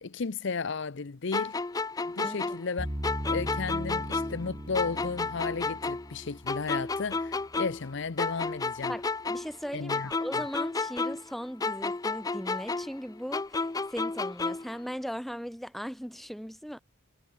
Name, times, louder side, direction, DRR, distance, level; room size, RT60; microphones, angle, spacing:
voice 1, 0.0-1.6 2.1-2.9 3.3-8.9 9.7-10.1, left 4 dB, 60° left, 0.7 m, -34 dB
sound 1, 1.3-4.5 4.7-7.9 8.2-11.3 11.6-14.8, left 3 dB, 15° left, 0.4 m, -32 dB
sound 2, 2.8-7.9, equal, 20° right, 2.1 m, -39 dB
voice 2, 8.9-16.8, equal, ahead, 2.4 m, -38 dB
head